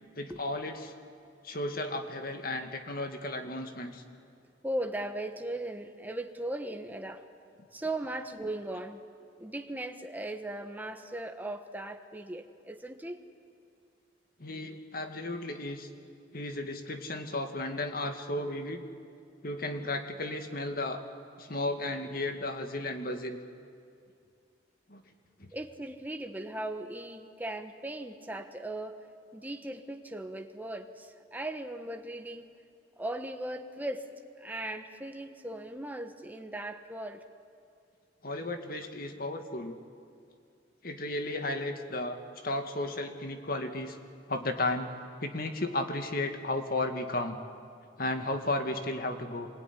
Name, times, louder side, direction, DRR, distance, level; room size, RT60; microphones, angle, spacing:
voice 1, 0.2-0.9 1.4-4.0 14.4-15.9 16.3-18.8 19.4-21.0 21.4-23.4 24.9-25.0 25.4-25.5 38.2-39.8 40.8-44.0 44.3-44.9 45.2-47.4 48.0-49.5, left 2 dB, 55° left, 5 dB, 2.1 m, -34 dB
voice 2, 4.6-7.2 7.7-9.0 9.4-13.2 25.5-29.0 29.3-32.5 33.0-34.1 34.4-37.2, right 1 dB, 10° right, 5 dB, 1.4 m, -38 dB
25.5 x 21.5 x 9.9 m, 2.4 s
head